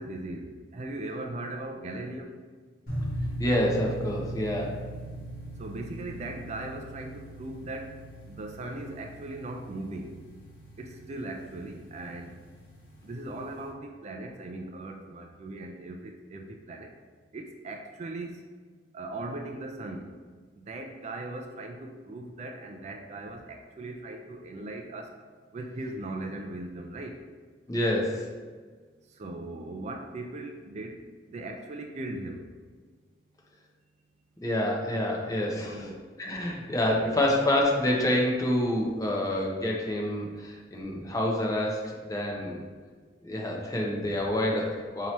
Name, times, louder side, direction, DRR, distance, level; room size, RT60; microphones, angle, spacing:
voice 1, 0.0-2.3 5.6-7.9 8.3-10.1 10.8-12.3 13.0-16.9 17.3-18.3 18.9-20.1 20.6-25.1 25.5-27.2 29.2-31.0 31.3-32.4 35.7-36.0 37.0-37.2, right 2 dB, 35° right, 3 dB, 0.3 m, -38 dB
sound 1, 2.9-13.7, right 1 dB, 50° left, 1.2 m, -39 dB
voice 2, 3.4-4.8 27.7-28.3 34.4-35.8 36.2-42.6 43.2-45.1, left 1 dB, 20° left, -1 dB, 0.5 m, -27 dB
4.5 x 2.8 x 3.0 m, 1.5 s
head